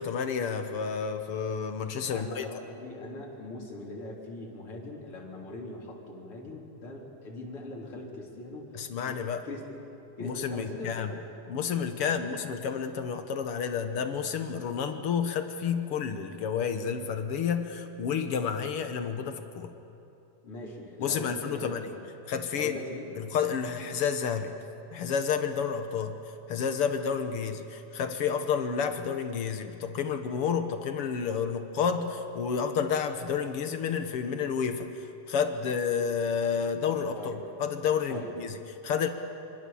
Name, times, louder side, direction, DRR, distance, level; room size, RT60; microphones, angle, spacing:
voice 1, 0.0-2.5 8.7-9.5 10.2-11.1 11.5-19.7 21.0-21.9 22.3-22.8 23.1-24.6 24.9-26.2 26.5-38.6 38.8-39.1, left 6 dB, 60° left, 7 dB, 1.6 m, -30 dB
voice 2, 2.1-8.7 9.0-9.2 9.4-9.8 10.2-11.2 12.0-12.1 20.4-21.9 22.5-23.1 37.2-37.4 38.1-38.3, left 2 dB, 40° left, -2 dB, 4.3 m, -41 dB
26.0 x 25.0 x 7.1 m, 2.8 s
omnidirectional pair, 3.9 m